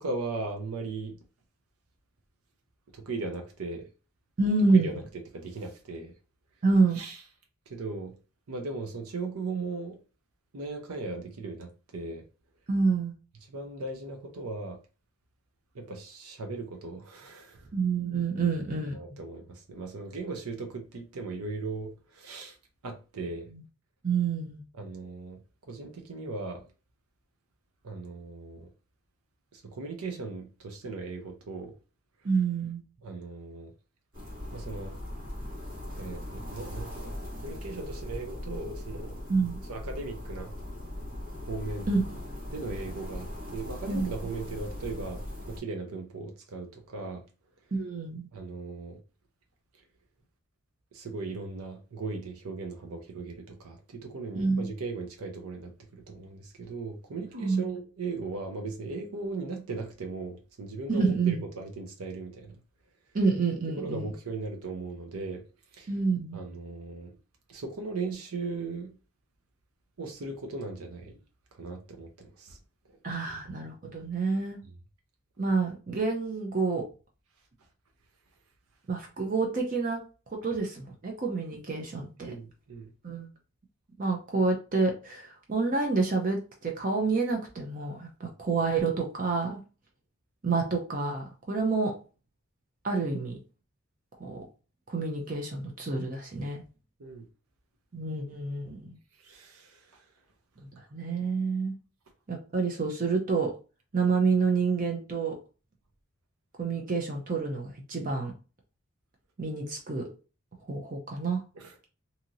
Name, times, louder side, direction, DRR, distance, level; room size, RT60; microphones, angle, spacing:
voice 1, 0.0-1.2 2.9-3.9 4.7-5.0 5.3-6.1 6.9-7.2 7.7-8.1 8.5-10.0 10.5-12.2 13.5-14.8 15.7-17.7 18.4-18.5 18.9-22.6 22.8-23.5 24.8-25.4 25.7-26.7 27.8-28.7 29.5-31.8 33.0-33.7 34.5-35.0 36.0-39.2 39.7-40.5 41.4-41.9 42.5-47.2 48.3-49.0 50.9-62.6 63.8-65.4 65.7-65.9 66.3-67.2 67.5-68.9 70.0-71.2 71.5-72.6 72.8-73.0 73.3-73.4 82.2-82.9 97.0-97.2 99.2-100.1 111.5-111.9, right 3 dB, 85° right, 0.6 m, -38 dB
voice 2, 4.4-5.0 6.6-7.0 12.7-13.1 17.7-19.2 23.5-23.6 24.0-24.6 32.2-32.8 39.3-39.6 41.9-42.2 43.9-44.1 47.7-48.3 54.4-54.7 57.4-57.6 60.9-61.4 63.1-64.1 65.9-66.4 73.0-74.6 75.4-76.9 78.9-80.0 80.3-82.3 83.0-83.3 84.0-89.6 90.4-91.9 92.8-93.4 94.2-94.4 94.9-96.6 97.9-99.0 100.9-101.7 102.3-103.6 103.9-105.3 106.6-108.3 109.4-110.0 110.7-111.4, right 4 dB, 35° right, 0.5 m, -28 dB
sound 1, 34.1-45.6, left 1 dB, 65° right, 1.5 m, -39 dB
2.9 x 2.7 x 2.5 m
head